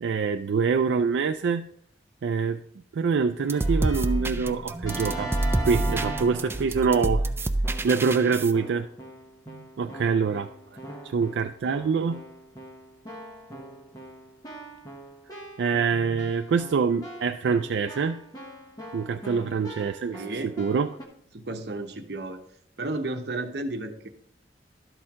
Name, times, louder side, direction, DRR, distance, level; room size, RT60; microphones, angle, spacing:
voice 1, 0.0-1.7 2.2-2.6 2.9-5.3 5.6-7.3 7.8-8.9 9.5-10.5 11.1-12.2 15.6-18.2 18.9-20.2 20.6-20.9, right 5 dB, 85° right, 6 dB, 0.4 m, -25 dB
sound 1, 3.4-8.5, right 1 dB, 15° right, 0.3 m, -28 dB
Keyboard (musical), 3.5-7.2 7.6-8.1 8.5-21.0, right 1 dB, 20° left, 1.2 m, -41 dB
voice 2, 20.1-20.5 21.3-22.4 22.8-24.1, right 2 dB, 65° right, 6 dB, 0.9 m, -33 dB
12.0 x 4.4 x 3.6 m, 0.67 s
head